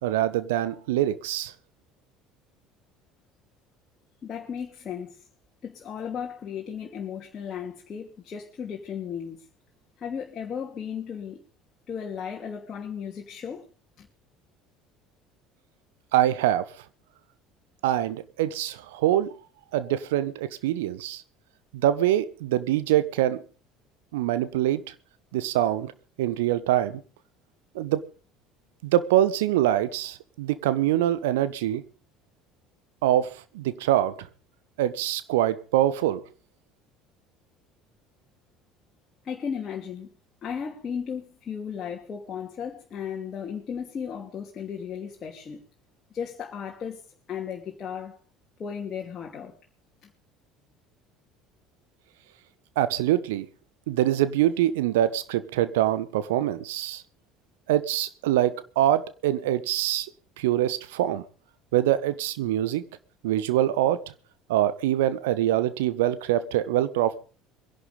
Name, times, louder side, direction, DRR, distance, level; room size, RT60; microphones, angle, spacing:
voice 1, 0.0-1.5 16.1-16.7 17.8-19.3 19.7-21.2 21.7-23.4 24.1-24.8 25.3-25.9 26.2-27.0 27.7-28.1 28.8-31.8 33.0-34.3 34.8-36.2 52.8-53.5 53.9-57.0 57.7-60.1 60.4-61.2 61.7-62.8 63.2-64.0 64.5-67.2, right 13 dB, 65° right, 1.2 m, -24 dB
voice 2, 4.2-5.2 5.6-9.5 10.0-11.4 11.9-13.6 14.0-14.1 39.2-40.1 40.4-45.6 46.1-48.2 48.6-49.5, left 7 dB, 35° left, 2.8 m, -35 dB
22.5 x 11.0 x 5.4 m
figure-of-eight pair, 60°, 0 cm